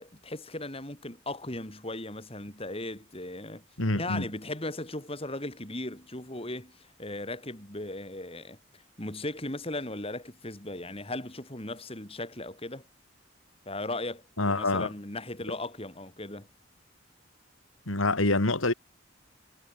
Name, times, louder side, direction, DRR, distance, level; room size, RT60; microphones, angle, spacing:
voice 1, 0.0-3.6 3.9-8.6 9.0-12.8 13.6-16.5, left 2 dB, 30° left, 5.1 m, -37 dB
voice 2, 3.8-4.3 14.4-14.9 17.9-18.7, left 2 dB, 90° left, 3.4 m, -26 dB
head